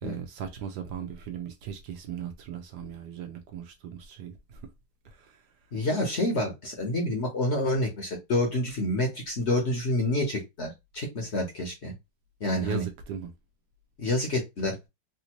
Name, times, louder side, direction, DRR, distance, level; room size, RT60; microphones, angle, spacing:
voice 1, 0.0-4.6 5.2-5.4 12.6-13.3, right 8 dB, 70° right, 1.1 m, -37 dB
voice 2, 5.7-11.9 12.4-12.9 14.0-14.8, left 1 dB, 45° left, 1.0 m, -28 dB
3.4 x 2.6 x 2.9 m
omnidirectional pair, 2.0 m